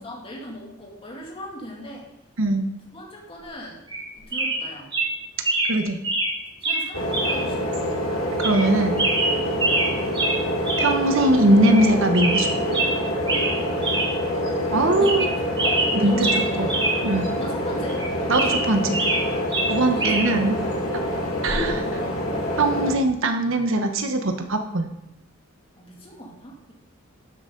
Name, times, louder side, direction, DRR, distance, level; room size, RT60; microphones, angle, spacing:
voice 1, 0.0-2.1 2.9-3.8 4.2-4.9 6.6-7.9 9.5-9.8 14.9-15.2 15.6-16.7 17.4-18.0 18.4-18.5 19.9-20.5 25.8-26.7, left 1 dB, 25° left, -2 dB, 2.6 m, -38 dB
sound 1, 3.9-4.1 4.3-4.6 4.9-5.1 5.4-5.7 6.0-6.3 6.6-6.8 7.1-7.4 7.7-7.8 8.4-8.7 9.0-9.9 10.1-10.4 10.7-10.9 11.2-11.3 11.7-11.9 12.1-12.9 13.3-13.5 13.8-14.1 14.5-14.6 14.9-15.3 15.6-16.9 17.2-17.3 17.9-19.2 19.5-20.3 21.5-21.7, right 2 dB, 25° right, 2.2 m, -24 dB
voice 2, 5.7-6.0 8.3-9.0 10.8-12.8 14.7-15.3 15.9-16.3 16.6-16.7 17.0-17.3 18.3-19.0 19.7-20.6 20.9-21.0 21.4-22.0 22.6-24.9, right 1 dB, 65° right, 6 dB, 1.1 m, -21 dB
sound 2, 6.9-22.9, equal, 90° left, 2.3 m, -26 dB
12.0 x 8.0 x 3.9 m, 0.86 s
head